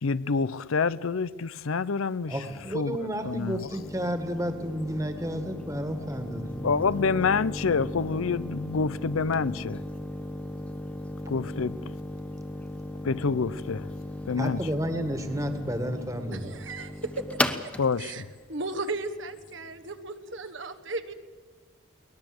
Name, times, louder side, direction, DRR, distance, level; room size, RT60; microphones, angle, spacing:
voice 1, 0.0-2.4 2.7-3.7 6.6-9.8 11.3-11.9 13.0-13.9 14.3-14.6 17.8-18.3, left 5 dB, 80° left, 0.6 m, -27 dB
voice 2, 2.3-6.7 14.3-16.5, equal, 15° right, 1.8 m, -31 dB
sound 1, 2.4-19.9, left 1 dB, 5° left, 0.8 m, -37 dB
voice 3, 16.3-17.2 18.0-18.2 18.5-21.1, right 3 dB, 60° right, 1.4 m, -35 dB
23.0 x 19.5 x 7.9 m
head